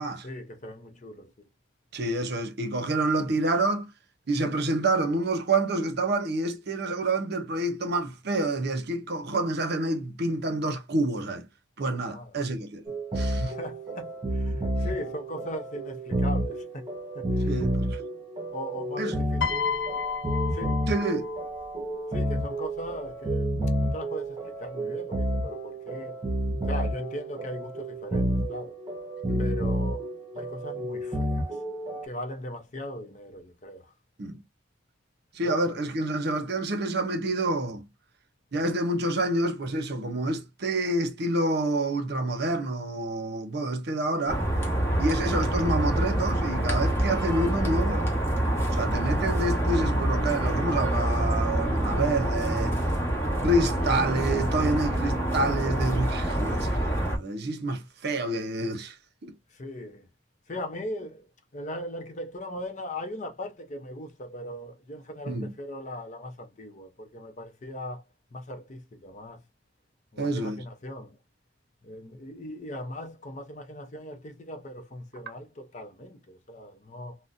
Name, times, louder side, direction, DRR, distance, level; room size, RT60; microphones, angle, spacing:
voice 1, 0.2-1.5 12.0-12.4 13.4-16.9 17.1-17.7 18.5-19.5 20.0-20.1 20.4-20.8 22.1-26.2 26.7-28.8 29.4-30.1 30.3-31.6 32.0-33.9 35.4-35.6 45.2-45.3 59.5-60.1 60.5-61.3 61.5-68.0 68.3-69.4 70.1-71.2 71.8-77.2, equal, 40° left, 0.6 m, -39 dB
voice 2, 1.9-3.9 4.3-11.5 11.8-13.6 17.4-18.0 19.0-19.2 20.9-21.3 29.3-29.5 34.2-34.4 35.3-37.9 38.5-44.4 45.0-48.1 48.7-52.8 53.4-59.0 59.2-59.3 65.3-65.5 70.2-70.6, right 2 dB, 55° right, 0.7 m, -28 dB
sound 1, 12.9-32.1, equal, 25° right, 1.0 m, -30 dB
Piano, 19.4-21.8 22.8-23.1, left 7 dB, 70° left, 0.9 m, -32 dB
sound 2, 44.3-57.2, right 1 dB, 10° left, 1.1 m, -26 dB
3.8 x 2.1 x 2.4 m
head